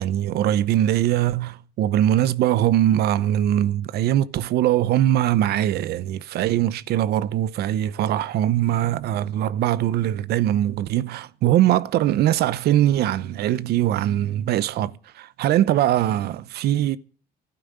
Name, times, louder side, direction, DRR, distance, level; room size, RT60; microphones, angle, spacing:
voice 1, 0.0-17.0, right 12 dB, 70° right, 0.7 m, -21 dB
12.0 x 9.1 x 9.7 m
cardioid pair, 110°, 17 cm